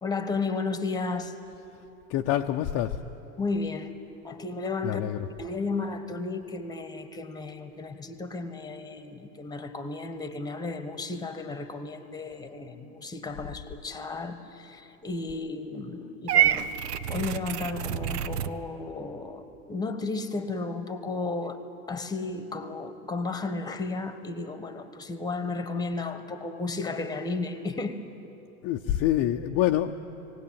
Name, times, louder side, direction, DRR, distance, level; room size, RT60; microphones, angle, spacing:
voice 1, 0.0-1.3 3.4-3.9 4.2-5.0 5.4-16.6 16.9-21.6 21.9-28.1, left 3 dB, 10° left, 9 dB, 1.2 m, -33 dB
voice 2, 2.1-3.0 4.8-5.3 28.6-29.9, left 12 dB, 30° left, 4 dB, 0.6 m, -26 dB
Purr / Meow, 16.3-18.5, right 10 dB, 85° right, 1.0 m, -26 dB
19.0 x 18.0 x 8.8 m, 2.9 s
hypercardioid pair, 130°, 46 cm